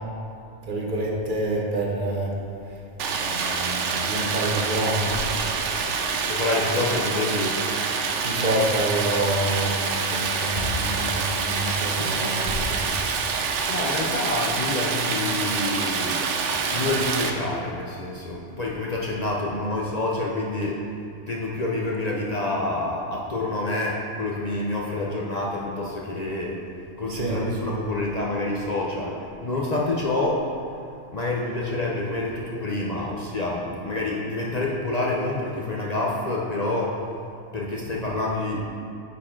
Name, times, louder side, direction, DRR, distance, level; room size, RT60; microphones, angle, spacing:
voice 1, 0.7-2.3 3.1-5.2 8.2-12.8 27.1-27.4, right 1 dB, 50° right, -1 dB, 1.0 m, -27 dB
Stream, 3.0-17.3, right 5 dB, 80° right, 0.9 m, -26 dB
voice 2, 6.3-7.6 11.8-12.3 13.0-13.2 13.6-16.3 16.6-20.8 21.3-26.6 27.0-29.2 29.4-30.4 31.1-36.9 37.5-38.6, left 2 dB, 45° left, -3 dB, 0.6 m, -27 dB
9.3 x 4.6 x 3.7 m, 2.5 s
omnidirectional pair, 1.2 m